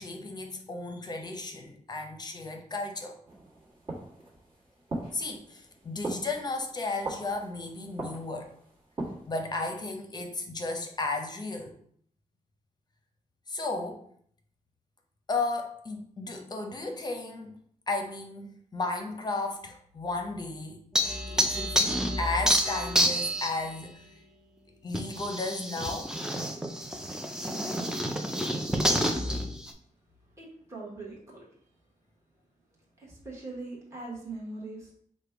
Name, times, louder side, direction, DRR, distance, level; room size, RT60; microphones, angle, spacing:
voice 1, 0.0-3.2 5.1-8.5 9.3-11.8 13.5-14.0 15.3-17.6 17.9-20.8 21.3-24.1 24.8-26.1, left 3 dB, 30° left, 3 dB, 0.7 m, -34 dB
sound 1, 3.2-9.5, right 2 dB, 40° right, 1.4 m, -41 dB
sound 2, 21.0-23.7 24.9-29.7, equal, 5° right, 0.4 m, -28 dB
voice 2, 30.4-31.4 33.0-34.9, right 2 dB, 20° right, -5 dB, 1.2 m, -41 dB
5.0 x 2.2 x 4.6 m, 0.63 s
wide cardioid pair, 170°, 14 cm